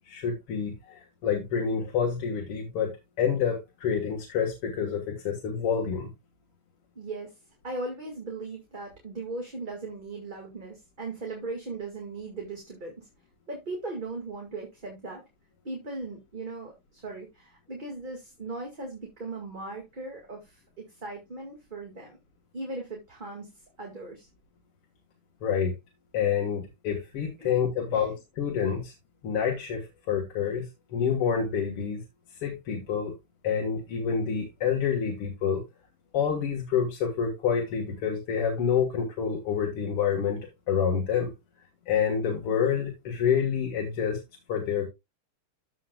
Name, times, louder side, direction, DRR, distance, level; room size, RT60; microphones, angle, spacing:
voice 1, 0.1-2.9 3.2-6.1 25.4-25.7 26.1-28.9 29.2-30.7 30.9-32.0 32.4-33.1 33.4-35.6 36.1-40.4 40.7-41.3 41.9-44.2 44.5-44.9, left 7 dB, 90° left, 2.5 m, -27 dB
voice 2, 7.0-7.3 7.6-13.1 13.5-15.2 15.6-22.1 22.5-23.5 23.8-24.3 27.4-27.5 27.9-28.1, right 3 dB, 25° right, 2.0 m, -38 dB
14.0 x 5.7 x 2.3 m
omnidirectional pair, 2.4 m